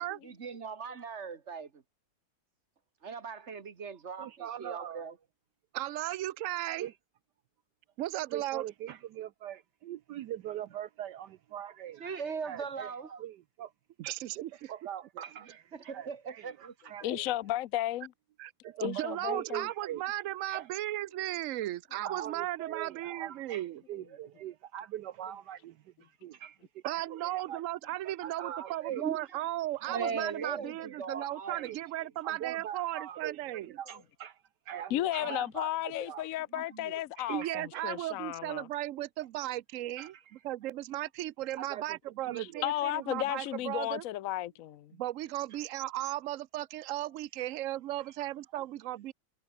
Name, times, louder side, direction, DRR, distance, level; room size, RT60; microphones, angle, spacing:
voice 1, 0.2-1.8 3.0-5.1 12.0-13.2 15.7-16.7 28.9-29.2 29.9-31.6 32.0-32.1 35.2-35.5 36.5-37.0, right 5 dB, 40° right, 1.6 m, -39 dB
voice 2, 4.2-5.0 6.8-6.9 8.3-12.2 12.4-12.9 13.2-13.7 14.4-17.3 18.6-20.0 20.5-20.7 22.0-27.6 28.0-29.1 29.9-31.8 32.2-36.3 37.2-37.9 40.0-40.2 41.6-42.0 42.3-42.8 48.0-48.1 48.5-48.7, right 11 dB, 70° right, 1.2 m, -42 dB
voice 3, 5.7-6.9 8.0-8.6 14.0-14.5 18.4-18.5 18.8-23.8 26.8-33.7 37.3-40.1 40.4-44.0 44.9-49.1, right 14 dB, 90° right, 0.7 m, -36 dB
voice 4, 17.0-18.1 18.8-19.6 34.9-38.7 42.4-44.9, left 14 dB, 70° left, 0.8 m, -34 dB
omnidirectional pair, 2.1 m